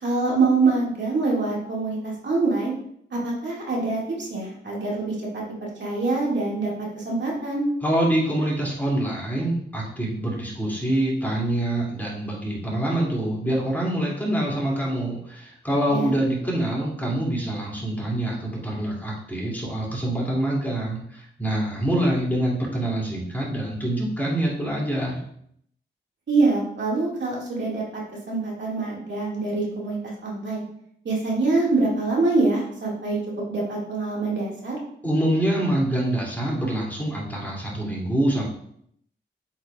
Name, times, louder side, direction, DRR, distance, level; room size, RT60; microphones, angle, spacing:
voice 1, 0.0-2.7 3.1-7.7 15.9-16.2 26.3-27.8 28.3-30.6 31.0-33.2 33.5-34.8, right 3 dB, 65° right, -4 dB, 2.1 m, -25 dB
voice 2, 7.8-25.2 35.0-38.4, right 1 dB, 10° left, -5 dB, 2.6 m, -25 dB
8.2 x 4.7 x 2.4 m, 0.68 s
cardioid pair, 65°, 20 cm